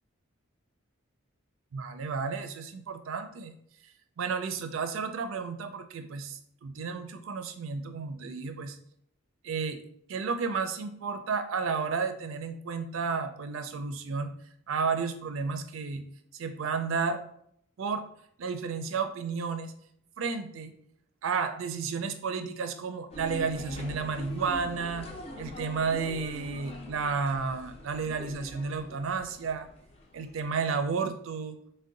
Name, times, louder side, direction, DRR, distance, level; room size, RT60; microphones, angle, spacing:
voice 1, 1.7-3.5 3.8-8.8 9.4-9.8 10.1-14.3 14.7-16.0 16.3-17.2 17.8-18.0 18.4-19.7 20.2-20.7 21.2-25.1 25.4-29.7 30.1-31.6, right 5 dB, 80° right, 8 dB, 0.4 m, -32 dB
sound 1, 23.1-30.6, left 1 dB, 30° left, 0.5 m, -43 dB
3.6 x 2.2 x 3.8 m, 0.70 s
head